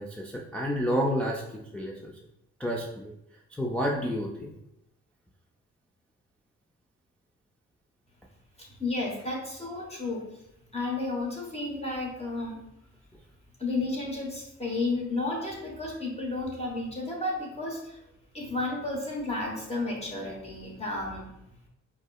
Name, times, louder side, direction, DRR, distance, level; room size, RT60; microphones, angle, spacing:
voice 1, 0.0-2.2 2.6-3.1 3.5-4.5, equal, 5° left, -2 dB, 0.4 m, -30 dB
voice 2, 8.7-10.3 10.7-12.6 13.6-18.0 18.3-21.3, left 2 dB, 20° left, -2 dB, 1.0 m, -32 dB
4.7 x 2.0 x 2.3 m, 0.84 s
supercardioid pair, 55°, 32 cm